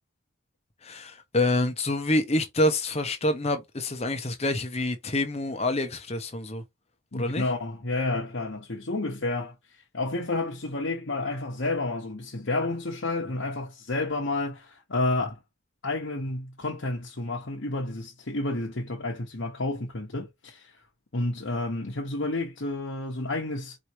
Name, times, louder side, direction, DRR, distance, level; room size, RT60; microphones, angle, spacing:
voice 1, 0.8-6.6 7.1-7.4, left 1 dB, 30° left, 0.9 m, -27 dB
voice 2, 7.1-9.5 9.9-15.4 15.8-20.8 21.1-23.8, left 2 dB, 65° left, 1.2 m, -30 dB
4.8 x 3.1 x 2.8 m
head